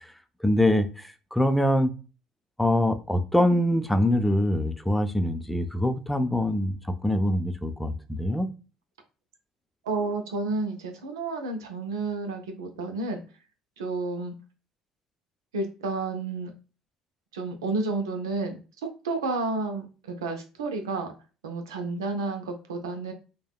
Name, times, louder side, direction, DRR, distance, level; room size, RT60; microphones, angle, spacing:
voice 1, 0.4-1.9 2.6-6.8 7.0-8.5, left 1 dB, 5° left, 8 dB, 0.5 m, -24 dB
voice 2, 9.8-13.2 13.8-14.3 15.5-16.5 17.3-18.6 19.0-21.1 21.4-23.1, right 3 dB, 90° right, 5 dB, 0.5 m, -31 dB
3.3 x 2.3 x 2.2 m, 0.33 s
hypercardioid pair, 65°, 2 cm